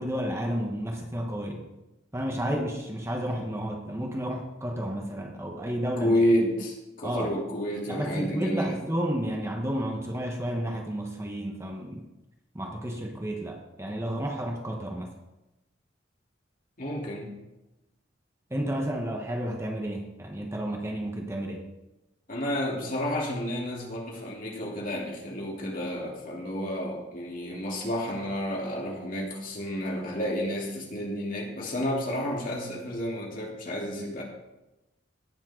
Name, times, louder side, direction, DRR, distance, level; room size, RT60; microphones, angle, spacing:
voice 1, 0.0-1.7 2.1-6.1 7.0-7.4 7.9-12.1 12.5-15.1 18.5-21.6, equal, 15° right, 2 dB, 1.1 m, -31 dB
voice 2, 6.0-8.8 16.8-17.4 22.3-34.2, equal, 45° left, -3 dB, 3.0 m, -30 dB
18.0 x 7.4 x 3.8 m, 0.99 s
head